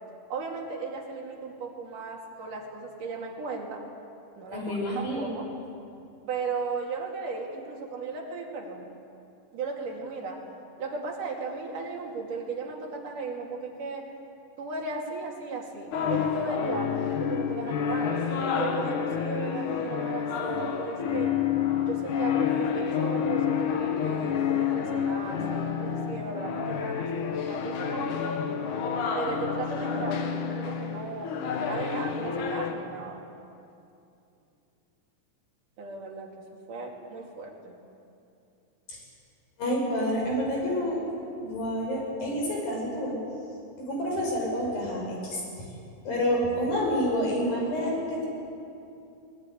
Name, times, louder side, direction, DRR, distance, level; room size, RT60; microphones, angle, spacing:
voice 1, 0.3-3.8 4.4-5.5 6.3-8.9 9.5-10.4 10.8-14.1 14.6-18.1 18.5-21.4 21.8-28.4 29.2-33.2 35.8-36.3 36.7-37.8, right 4 dB, 65° right, 0 dB, 4.1 m, -36 dB
voice 2, 4.5-5.3 38.9-39.0 39.6-41.0 41.4-43.2 43.8-45.7 46.0-48.3, equal, 85° left, -2 dB, 7.8 m, -28 dB
sound 1, 15.9-32.7, left 7 dB, 65° left, 2.8 m, -29 dB
21.0 x 20.5 x 10.0 m, 2.6 s
omnidirectional pair, 4.0 m